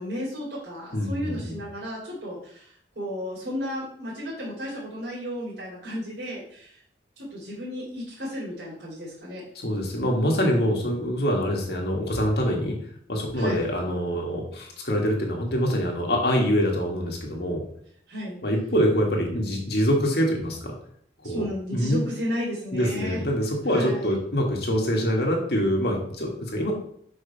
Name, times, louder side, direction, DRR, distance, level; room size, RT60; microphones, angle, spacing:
voice 1, 0.0-6.8 7.2-9.4 13.4-13.7 18.1-18.4 21.2-23.2 23.7-24.1, equal, 70° right, -7 dB, 3.3 m, -33 dB
voice 2, 0.9-1.6 9.6-12.8 13.1-17.6 18.4-20.7 21.2-21.4 21.7-22.0 22.7-26.7, equal, 60° left, 0 dB, 1.9 m, -25 dB
5.5 x 5.3 x 5.7 m, 0.64 s
head